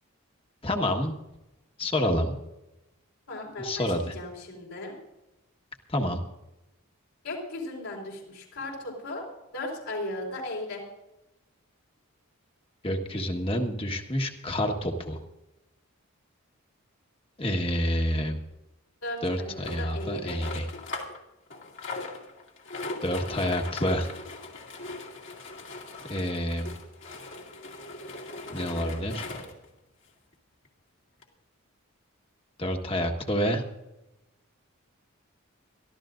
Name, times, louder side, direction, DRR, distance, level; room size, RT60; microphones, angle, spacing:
voice 1, 0.6-1.1 1.8-2.3 3.6-4.1 5.9-6.2 12.8-15.2 17.4-18.4 19.2-20.7 23.0-24.1 26.1-26.7 28.5-29.2 32.6-33.6, equal, 25° left, 4 dB, 1.5 m, -28 dB
voice 2, 3.3-4.9 7.2-9.2 9.5-10.8 19.0-20.4, left 1 dB, 75° left, -3 dB, 4.5 m, -36 dB
sound 1, 19.6-21.2 21.5-29.7 30.3-30.4 30.6-30.7 31.2-31.3, left 3 dB, 55° left, 2.4 m, -40 dB
23.0 x 14.5 x 2.6 m, 0.96 s
head